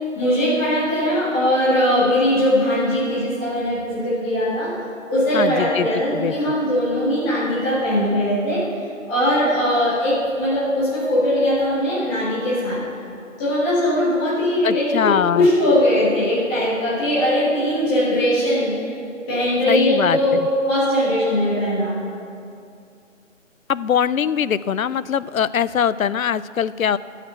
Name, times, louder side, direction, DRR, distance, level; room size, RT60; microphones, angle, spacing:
voice 1, 0.1-4.7 5.1-8.6 9.1-12.8 13.4-18.7 19.3-22.0, left 1 dB, 5° left, -11 dB, 1.4 m, -20 dB
voice 2, 5.3-6.3 14.6-15.5 19.7-20.4 23.7-27.0, left 8 dB, 85° left, 17 dB, 0.5 m, -22 dB
14.5 x 5.9 x 6.9 m, 2.4 s
figure-of-eight pair, 160°, 40 cm